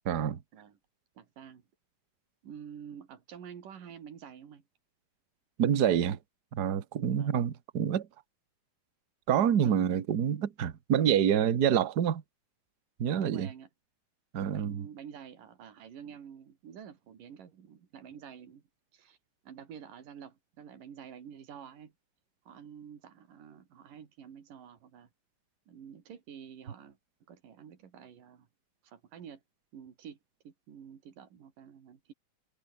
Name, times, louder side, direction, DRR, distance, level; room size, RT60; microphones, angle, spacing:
voice 1, 0.0-0.4 5.6-6.2 6.5-8.1 9.3-12.2 13.0-13.5 14.3-14.9, right 9 dB, 45° right, 1.3 m, -27 dB
voice 2, 1.2-1.6 2.4-4.6 7.1-7.4 9.4-10.0 13.2-13.7 14.5-18.6 18.9-19.2 19.4-21.9 22.5-25.1 25.7-27.0 27.3-28.5 28.8-29.4 29.7-30.2 30.4-32.1, right 8 dB, 85° right, 4.4 m, -49 dB
omnidirectional pair, 3.7 m